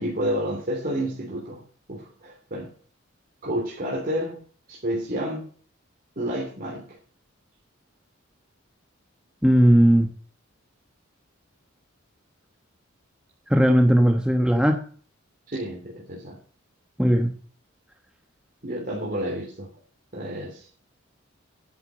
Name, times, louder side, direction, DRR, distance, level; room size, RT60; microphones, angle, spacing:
voice 1, 0.0-1.6 1.9-2.7 3.4-4.4 4.7-5.4 6.1-7.0 15.5-16.4 18.6-19.7 20.1-20.7, equal, 45° right, -2 dB, 3.3 m, -30 dB
voice 2, 9.4-10.1 13.5-14.8 17.0-17.3, equal, 5° right, 4 dB, 1.1 m, -17 dB
10.5 x 8.2 x 7.9 m, 0.43 s
head